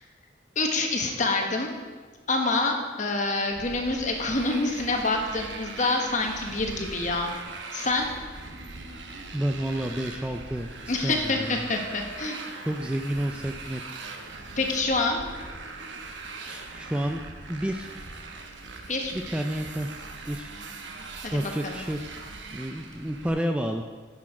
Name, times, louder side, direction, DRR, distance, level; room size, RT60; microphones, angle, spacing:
voice 1, 0.5-1.7 2.3-7.3 7.7-8.1 10.9-12.4 14.6-15.2 18.9-19.1 21.2-21.8, left 2 dB, 40° left, 3 dB, 1.1 m, -27 dB
Motorcycle, 3.5-23.3, right 3 dB, 75° right, 0.9 m, -41 dB
voice 2, 9.3-11.6 12.6-13.8 16.5-17.2 17.5-17.9 19.1-20.0 20.3-20.5 21.3-22.0 22.5-23.8, right 1 dB, 5° right, 4 dB, 0.3 m, -30 dB
10.5 x 6.2 x 4.8 m, 1.5 s
head